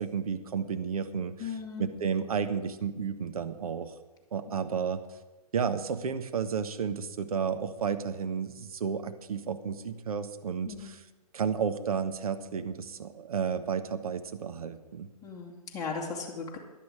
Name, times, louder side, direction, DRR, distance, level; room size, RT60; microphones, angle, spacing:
voice 1, 0.0-1.5 1.8-3.9 4.3-5.0 5.5-11.0 11.3-15.1, right 6 dB, 65° right, 9 dB, 1.3 m, -32 dB
voice 2, 1.4-1.9 4.6-4.7 10.6-11.0 15.2-16.6, left 5 dB, 15° left, -2 dB, 2.3 m, -37 dB
16.0 x 11.0 x 4.9 m, 1.1 s
figure-of-eight pair, 125°, 20 cm